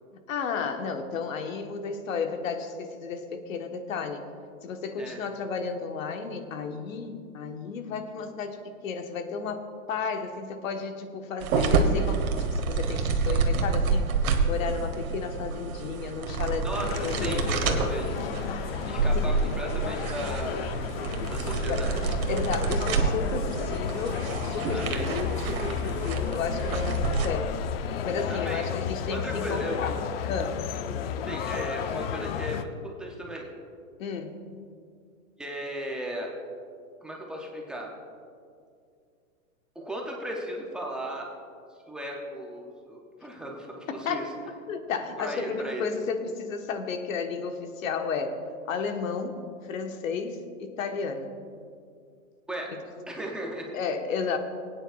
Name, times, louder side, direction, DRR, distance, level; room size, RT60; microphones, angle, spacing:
voice 1, 0.3-4.2 4.6-9.6 9.9-12.2 12.6-18.0 19.1-19.4 21.7-21.9 22.3-27.6 28.0-30.6 34.0-34.4 43.9-44.3 44.7-48.4 48.7-51.3 53.7-54.4, left 5 dB, 65° left, 6 dB, 1.3 m, -33 dB
sound 1, 11.4-27.3, right 4 dB, 75° right, 1.4 m, -28 dB
voice 2, 16.6-18.0 18.8-20.8 21.3-22.1 24.7-25.1 28.3-28.7 29.1-29.8 31.2-33.5 35.4-36.3 37.0-37.9 39.8-41.3 41.9-44.3 45.2-45.9 52.5-52.7 53.1-53.7, right 1 dB, ahead, -1 dB, 0.4 m, -36 dB
sound 2, 16.7-32.6, left 8 dB, 45° left, 0.5 m, -33 dB
22.0 x 9.2 x 2.4 m, 2.3 s
hypercardioid pair, 140°, 43 cm